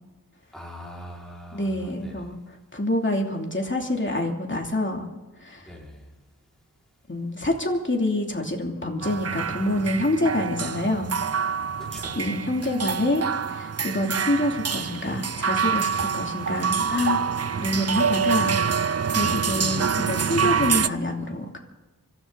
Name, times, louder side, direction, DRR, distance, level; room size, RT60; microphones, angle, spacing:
voice 1, 0.5-2.2 5.7-6.0 11.9-12.3 19.2-19.6, left 1 dB, ahead, -4 dB, 5.0 m, -42 dB
voice 2, 1.5-2.4 2.7-5.1 5.4-5.7 7.1-11.2 12.1-13.2 13.5-17.2 17.6-21.6, left 1 dB, 35° left, 1 dB, 2.8 m, -27 dB
sound 1, 9.0-20.9, right 6 dB, 45° right, 0.5 m, -26 dB
25.0 x 14.5 x 4.0 m, 1.2 s
wide cardioid pair, 55°, 36 cm